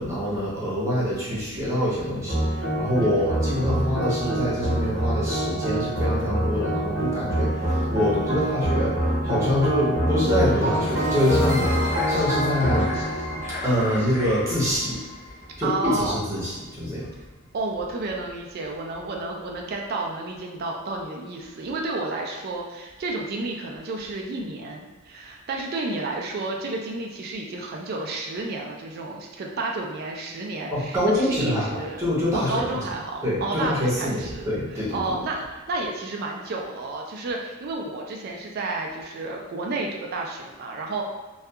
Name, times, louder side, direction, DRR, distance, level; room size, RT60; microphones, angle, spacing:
voice 1, 0.0-12.9 13.5-15.0 15.6-17.1 30.7-32.9 33.2-35.2, left 1 dB, 15° right, -8 dB, 0.8 m, -25 dB
sound 1, 2.3-14.8, equal, 65° right, 0.9 m, -25 dB
voice 2, 3.0-3.4 11.6-11.7 15.6-16.2 17.5-32.0 32.3-34.5 34.9-41.0, right 2 dB, 50° right, 0 dB, 0.3 m, -31 dB
sound 2, 10.3-16.4, left 1 dB, 30° left, 0.7 m, -34 dB
2.7 x 2.4 x 2.3 m, 1.2 s
head